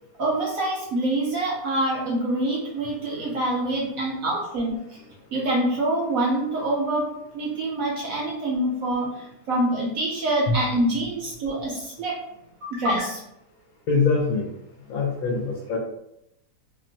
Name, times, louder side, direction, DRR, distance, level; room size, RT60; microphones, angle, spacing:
voice 1, 0.2-5.0 5.3-12.2 12.6-13.2, right 1 dB, 70° right, -3 dB, 0.8 m, -26 dB
voice 2, 13.9-14.5 14.9-15.8, left 4 dB, 70° left, -2 dB, 0.9 m, -23 dB
2.9 x 2.1 x 2.6 m, 0.81 s
omnidirectional pair, 1.9 m